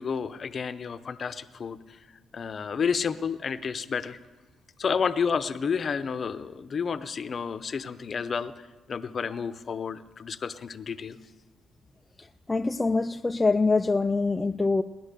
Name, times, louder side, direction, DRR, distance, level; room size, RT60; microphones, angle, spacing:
voice 1, 0.0-2.0 2.3-4.2 4.8-8.5 8.9-11.2, left 6 dB, 45° left, 0.8 m, -30 dB
voice 2, 12.5-14.8, left 3 dB, 15° left, 0.4 m, -24 dB
18.5 x 11.0 x 6.8 m
cardioid pair, 90°, 0 cm